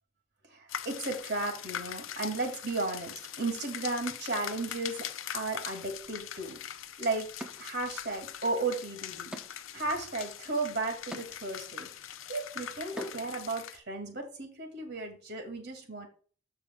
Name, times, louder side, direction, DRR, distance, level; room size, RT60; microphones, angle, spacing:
voice 1, 0.5-5.1 5.3-6.6 7.0-7.3 7.6-9.3 9.7-11.9 12.3-16.1, right 2 dB, 55° right, 4 dB, 2.2 m, -34 dB
sound 1, 0.7-13.8, left 10 dB, 85° left, 0.6 m, -42 dB
sound 2, 6.6-6.7 7.4-8.3 8.7-13.5, equal, 5° right, 0.8 m, -47 dB
14.0 x 5.0 x 2.3 m, 0.41 s
head